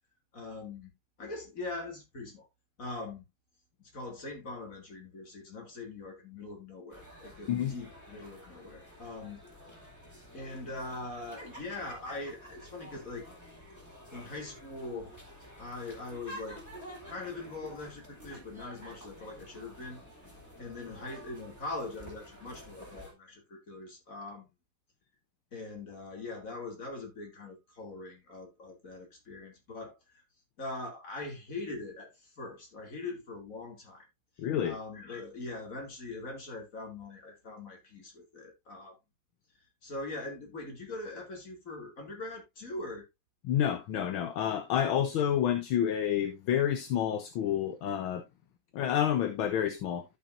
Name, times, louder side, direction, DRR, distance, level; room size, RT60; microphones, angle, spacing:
voice 1, 0.3-0.9 1.2-2.5 2.8-3.2 3.9-9.4 10.3-13.3 14.1-15.2 15.6-16.6 17.1-20.0 20.6-24.5 25.5-30.2 30.6-34.1 34.6-39.0 39.8-43.0, left 2 dB, 35° left, 3.2 m, -42 dB
sound 1, 6.9-23.1, equal, 5° left, 3.5 m, -50 dB
voice 2, 34.4-34.8 43.4-48.2 48.7-50.0, left 9 dB, 70° left, 1.6 m, -29 dB
13.5 x 6.0 x 2.6 m
omnidirectional pair, 2.4 m